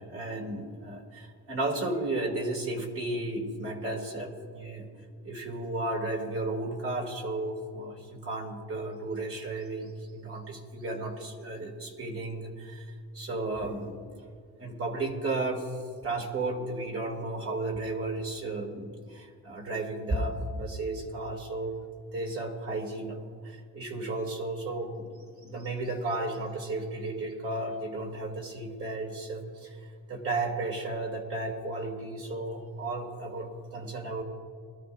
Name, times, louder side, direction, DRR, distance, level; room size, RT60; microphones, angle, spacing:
voice 1, 0.0-4.9 5.2-14.1 14.6-15.7 16.0-21.7 22.1-23.2 23.4-25.1 25.4-34.2, right 2 dB, 50° right, 1 dB, 2.7 m, -34 dB
22.0 x 13.5 x 2.6 m, 2.1 s
cardioid pair, 90°, 30 cm